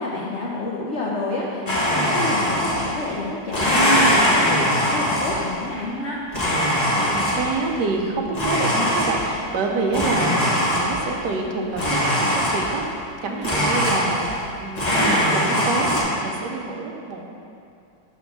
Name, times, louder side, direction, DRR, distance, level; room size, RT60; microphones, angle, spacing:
voice 1, 0.0-6.2 9.7-9.8 13.3-13.4, left 2 dB, 70° left, -4 dB, 0.6 m, -29 dB
Domestic sounds home sounds, 1.7-3.1 3.5-5.6 6.3-7.6 8.3-9.5 9.9-11.1 11.7-12.9 13.4-14.5 14.7-16.0, equal, 25° left, 1.2 m, -21 dB
voice 2, 7.1-14.3 14.6-17.3, right 3 dB, 70° right, 1 dB, 1.3 m, -27 dB
6.3 x 3.6 x 6.0 m, 2.5 s
omnidirectional pair, 2.0 m